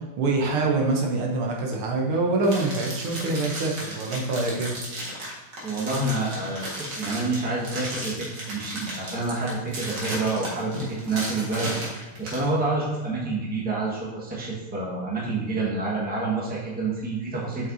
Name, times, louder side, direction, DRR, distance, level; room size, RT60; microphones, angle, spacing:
voice 1, 0.2-4.7, right 3 dB, 80° right, 0 dB, 1.9 m, -25 dB
sound 1, 2.4-12.5, right 1 dB, 55° right, 2.3 m, -35 dB
voice 2, 5.6-17.7, right 3 dB, 5° right, -5 dB, 1.2 m, -28 dB
7.7 x 5.8 x 2.7 m, 1.2 s
omnidirectional pair, 2.4 m